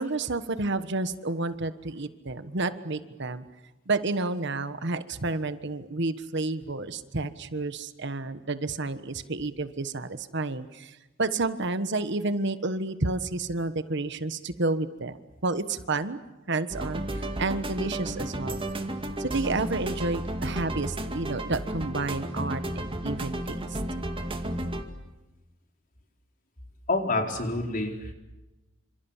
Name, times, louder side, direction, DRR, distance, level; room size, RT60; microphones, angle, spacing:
voice 1, 0.0-3.4 3.9-15.2 15.4-16.2 16.5-18.6 19.2-23.8, right 3 dB, 65° right, 11 dB, 1.4 m, -30 dB
sound 1, 16.7-24.8, right 1 dB, 25° right, 2.3 m, -33 dB
voice 2, 26.9-28.1, left 2 dB, 45° left, 3 dB, 4.4 m, -27 dB
28.0 x 27.0 x 7.3 m, 1.1 s
head